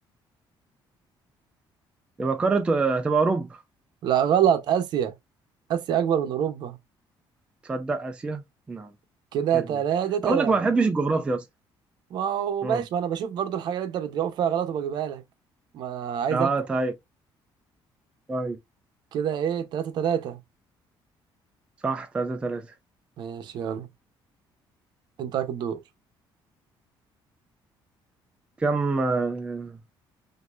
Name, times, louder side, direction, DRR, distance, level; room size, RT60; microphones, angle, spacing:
voice 1, 2.2-3.6 7.7-8.4 8.7-8.9 9.5-9.6 10.2-11.4 12.6-12.8 16.3-16.9 18.3-18.6 21.8-22.6 28.6-29.8, right 3 dB, 10° right, 0.4 m, -25 dB
voice 2, 4.0-5.1 5.7-6.8 9.3-10.6 12.1-15.2 15.7-16.5 19.1-20.4 23.2-23.9 25.2-25.8, right 9 dB, 55° right, 0.7 m, -26 dB
6.2 x 2.7 x 2.4 m
cardioid pair, 180°, 9 cm